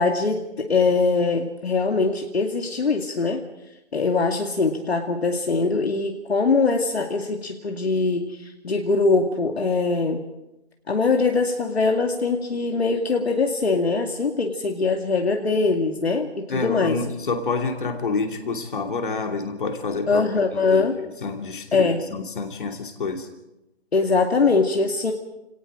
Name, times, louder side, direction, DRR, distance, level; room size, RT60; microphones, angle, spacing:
voice 1, 0.0-3.4 3.9-10.2 10.9-17.0 20.1-21.0 21.7-22.0 23.9-25.1, left 4 dB, 60° left, 3 dB, 2.3 m, -22 dB
voice 2, 16.5-20.3 20.5-23.3, left 4 dB, 45° left, 4 dB, 2.8 m, -28 dB
29.5 x 18.0 x 5.0 m, 0.96 s
figure-of-eight pair, 165°, 35 cm